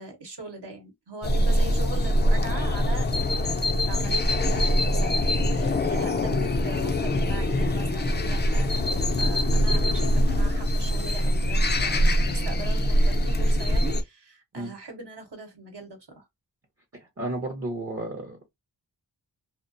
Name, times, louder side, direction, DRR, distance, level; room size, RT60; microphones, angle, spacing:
voice 1, 0.0-16.3, right 3 dB, 70° right, 0.9 m, -40 dB
sound 1, 1.2-14.0, equal, 25° left, 0.3 m, -23 dB
voice 2, 17.2-18.6, right 2 dB, 35° right, 0.6 m, -33 dB
2.3 x 2.1 x 2.5 m
wide cardioid pair, 80°, 42 cm